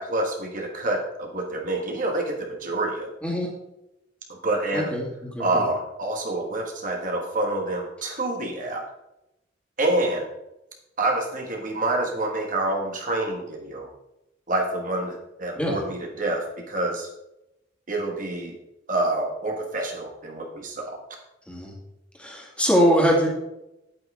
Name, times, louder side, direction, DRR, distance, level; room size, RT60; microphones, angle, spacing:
voice 1, 0.0-3.1 4.3-4.9 5.4-8.8 9.8-10.3 11.0-13.9 14.5-17.1 17.9-18.6 18.9-21.0, right 2 dB, 45° right, 1 dB, 1.3 m, -27 dB
voice 2, 4.7-5.7 15.6-15.8 21.5-21.7 22.2-23.3, equal, 5° left, -2 dB, 2.1 m, -23 dB
8.9 x 8.7 x 3.6 m, 0.90 s
head